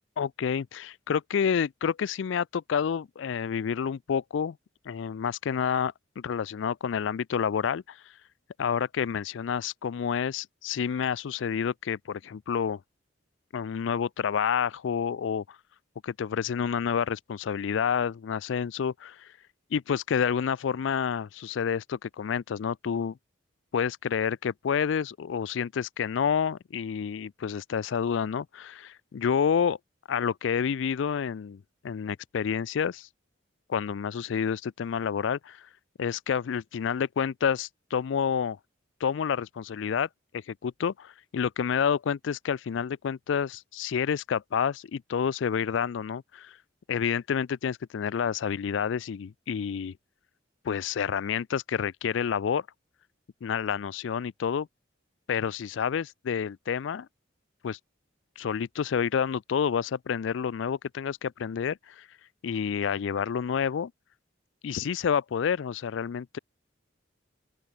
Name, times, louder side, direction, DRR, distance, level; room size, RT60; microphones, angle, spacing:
voice 1, 0.2-4.6 4.9-8.0 8.6-12.8 13.5-15.4 16.0-19.3 19.7-23.2 23.7-29.8 30.1-33.1 33.7-35.7 36.0-38.6 39.0-40.1 40.3-46.6 46.9-49.9 50.6-52.7 53.4-54.7 55.3-57.1 57.6-57.8 58.4-62.1 62.4-63.9 64.6-66.4, left 7 dB, 75° left, 0.4 m, -29 dB
open air
head